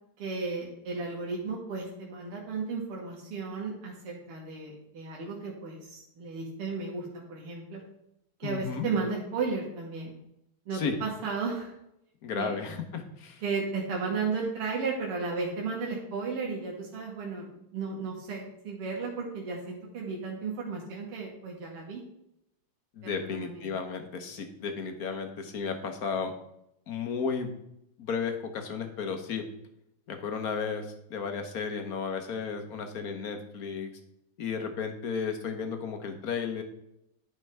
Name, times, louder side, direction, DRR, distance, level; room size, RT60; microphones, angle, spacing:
voice 1, 0.2-7.8 8.4-10.1 10.7-11.7 12.4-12.6 13.4-22.0 23.0-23.7, right 4 dB, 85° right, -2 dB, 2.5 m, -34 dB
voice 2, 8.4-8.9 10.7-11.0 12.2-13.4 22.9-26.3 26.9-27.5 28.0-29.5 30.1-33.9 34.4-36.6, left 5 dB, 50° left, 6 dB, 1.3 m, -33 dB
11.0 x 5.4 x 3.4 m, 0.80 s
omnidirectional pair, 2.4 m